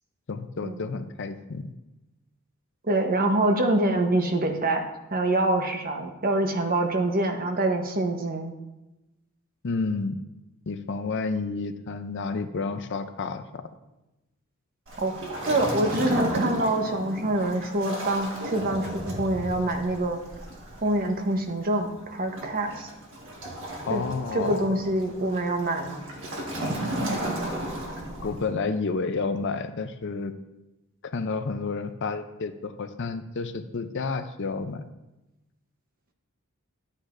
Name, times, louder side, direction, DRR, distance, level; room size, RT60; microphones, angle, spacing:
voice 1, 0.3-1.7 9.6-10.2 10.7-13.6 23.9-24.7 28.2-30.3 31.1-34.8, left 4 dB, 55° left, 9 dB, 0.5 m, -30 dB
voice 2, 2.9-4.8 5.1-8.5 15.0-20.2 20.8-22.9 23.9-24.0 24.3-26.0, right 2 dB, 40° right, 4 dB, 1.0 m, -25 dB
Waves surf, 14.9-28.5, right 1 dB, 60° right, 1.6 m, -34 dB
11.5 x 8.6 x 2.6 m, 0.99 s
head